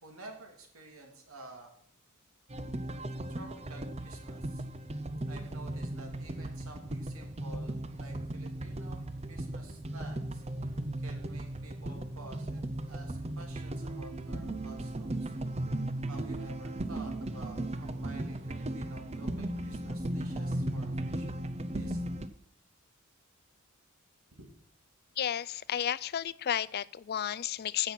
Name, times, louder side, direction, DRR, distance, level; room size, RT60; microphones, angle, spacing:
voice 1, 0.0-1.7 3.3-4.6 5.3-9.0 9.3-10.7 11.0-15.3 16.1-21.4 21.7-22.0 24.4-24.5, right 2 dB, 80° right, 2 dB, 3.0 m, -51 dB
sound 1, 2.5-22.3, right 1 dB, 30° right, 0.7 m, -37 dB
voice 2, 25.2-27.9, left 10 dB, 45° left, 18 dB, 0.4 m, -32 dB
15.5 x 6.2 x 6.0 m, 0.62 s
head